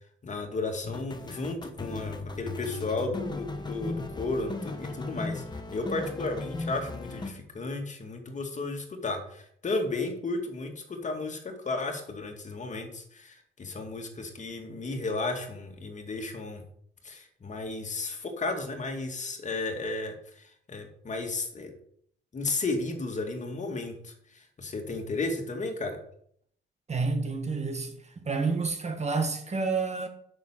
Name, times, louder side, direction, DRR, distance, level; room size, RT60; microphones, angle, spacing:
voice 1, 0.2-5.4 5.7-16.6 17.0-21.7 22.3-26.0, left 3 dB, 35° left, 2.2 m, -34 dB
sound 1, 0.8-7.3, left 3 dB, 20° left, 1.3 m, -37 dB
voice 2, 26.9-30.1, right 4 dB, 35° right, 1.7 m, -29 dB
7.3 x 6.5 x 7.3 m
cardioid pair, 90°, 20 cm